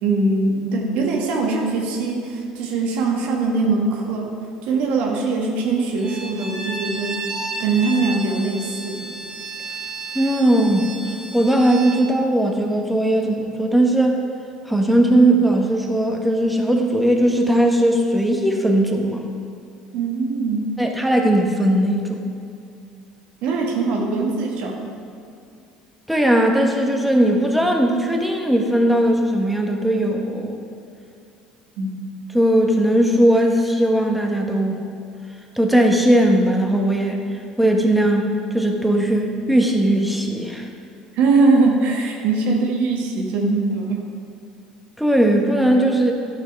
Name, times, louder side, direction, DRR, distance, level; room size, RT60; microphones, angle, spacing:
voice 1, 0.0-4.3 4.6-7.2 7.6-9.1 19.9-20.7 23.4-24.8 31.8-31.9 41.1-44.0, right 3 dB, 65° right, 0 dB, 1.5 m, -21 dB
Bowed string instrument, 6.0-12.1, right 3 dB, 25° right, 1.6 m, -32 dB
voice 2, 10.1-10.9 11.3-14.2 14.7-19.2 20.8-22.2 26.1-30.6 32.3-34.8 35.6-37.2 37.6-40.7 45.0-46.1, right 1 dB, ahead, 1 dB, 1.5 m, -18 dB
11.5 x 5.9 x 4.7 m, 2.4 s
hypercardioid pair, 70°, 2 cm